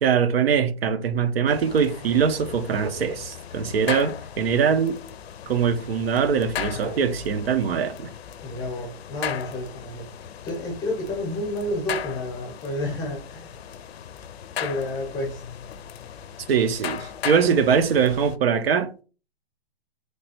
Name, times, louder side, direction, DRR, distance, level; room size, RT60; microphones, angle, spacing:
voice 1, 0.0-5.0 5.5-8.1 16.5-19.0, right 7 dB, 70° right, 0.7 m, -22 dB
sound 1, 1.5-18.4, left 9 dB, 80° left, 0.5 m, -37 dB
voice 2, 8.4-10.1 10.4-13.5 14.6-15.4, left 1 dB, 10° left, 0.7 m, -30 dB
3.2 x 2.2 x 4.1 m
hypercardioid pair, 155°, 31 cm